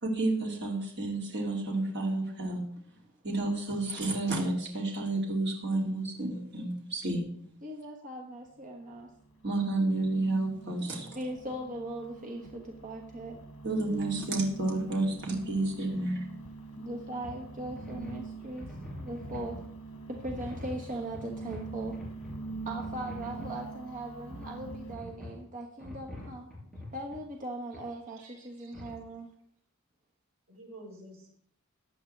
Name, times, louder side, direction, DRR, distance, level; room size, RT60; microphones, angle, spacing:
voice 1, 0.0-2.6 3.2-7.2 9.4-11.1 13.6-16.2, right 2 dB, 55° right, -1 dB, 2.7 m, -30 dB
voice 2, 7.6-9.1 11.1-13.4 16.8-18.7 19.0-19.7 20.1-22.0 22.6-26.5 26.9-29.3, right 1 dB, 40° right, 1 dB, 1.3 m, -39 dB
sound 1, 8.5-25.0, right 3 dB, 80° left, 1.3 m, -44 dB
sound 2, 17.2-17.4 17.6-19.7 20.1-23.6 24.3-25.4 25.8-27.2 27.7-27.8 28.7-29.0, left 1 dB, ahead, 6.0 m, -44 dB
voice 3, 28.2-28.7 30.5-31.3, right 1 dB, 85° right, 0 dB, 3.9 m, -50 dB
15.5 x 9.9 x 3.3 m, 0.66 s
head